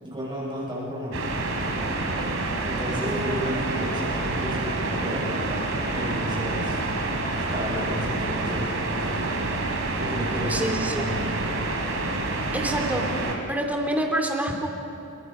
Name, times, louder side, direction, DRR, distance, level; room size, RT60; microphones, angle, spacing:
voice 1, 0.0-1.3 2.6-6.8 7.3-9.5 10.0-11.4, equal, 25° right, -4 dB, 6.3 m, -33 dB
sound 1, 1.1-13.3, right 2 dB, 70° right, 3.5 m, -28 dB
voice 2, 3.0-3.5 10.5-11.0 12.5-13.1 13.5-14.7, right 1 dB, 10° right, 2 dB, 2.7 m, -27 dB
29.0 x 24.0 x 5.6 m, 2.8 s
head